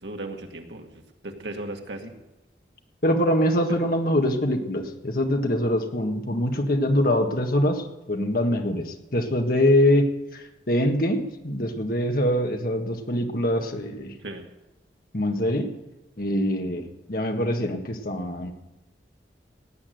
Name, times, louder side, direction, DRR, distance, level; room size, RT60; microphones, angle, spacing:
voice 1, 0.0-2.1 3.7-3.8 14.2-14.5, right 2 dB, 80° right, 3 dB, 2.1 m, -37 dB
voice 2, 3.0-14.1 15.1-15.7 16.2-16.8 17.1-18.5, left 1 dB, 55° left, 4 dB, 1.7 m, -24 dB
17.5 x 8.5 x 7.9 m, 0.95 s
head